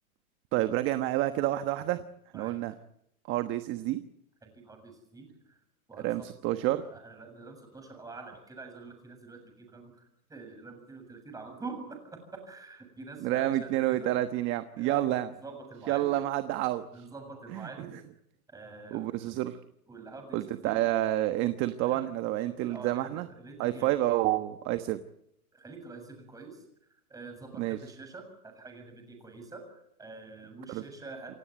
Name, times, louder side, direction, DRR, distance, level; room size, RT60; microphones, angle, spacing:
voice 1, 0.5-2.0 2.3-2.7 3.3-4.0 6.0-6.8 13.2-15.3 15.9-17.1 17.5-17.9 18.9-19.6 20.3-23.3 23.6-25.0 27.6-27.8 30.7-30.8, right 15 dB, 30° right, 11 dB, 1.3 m, -29 dB
voice 2, 4.4-5.6 5.9-6.3 6.7-14.2 14.8-16.1 16.9-17.9 18.5-19.3 19.9-20.8 21.9-22.1 22.4-23.9 25.5-26.6 27.1-31.4, right 3 dB, 10° right, 4 dB, 7.2 m, -46 dB
28.5 x 16.0 x 9.4 m, 0.76 s
hypercardioid pair, 140°, 43 cm